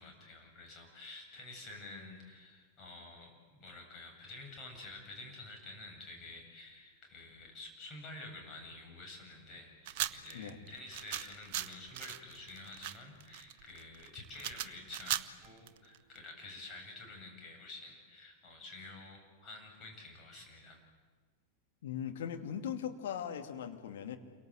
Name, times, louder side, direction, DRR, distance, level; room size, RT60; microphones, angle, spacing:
voice 1, 0.0-20.8, left 2 dB, 30° left, 1 dB, 8.0 m, -50 dB
sound 1, 9.9-16.2, right 12 dB, 50° right, 0.8 m, -39 dB
voice 2, 21.8-24.2, left 8 dB, 60° left, 5 dB, 2.4 m, -39 dB
28.5 x 23.5 x 7.8 m, 1.6 s
figure-of-eight pair, 90°, 0 cm